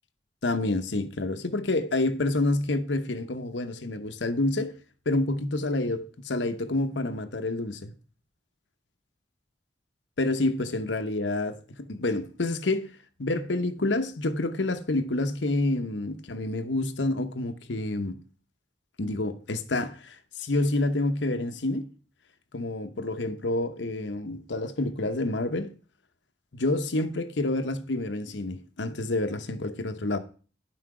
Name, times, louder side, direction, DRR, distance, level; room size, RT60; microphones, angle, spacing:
voice 1, 0.4-4.7 5.1-7.9 10.2-12.9 13.2-18.2 19.0-21.9 22.5-25.7 26.5-30.2, left 2 dB, 80° left, 0.9 m, -28 dB
10.5 x 6.0 x 4.8 m
head